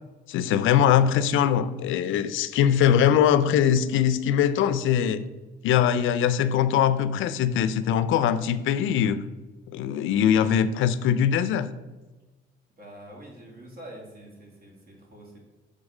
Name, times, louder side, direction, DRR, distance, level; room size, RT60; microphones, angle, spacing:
voice 1, 0.3-5.2 5.6-9.2 9.7-11.7, left 9 dB, 80° left, 13 dB, 0.4 m, -22 dB
voice 2, 12.8-15.4, right 1 dB, 50° right, -1 dB, 2.1 m, -45 dB
6.4 x 3.8 x 4.9 m, 1.2 s
cardioid pair, 90°, 20 cm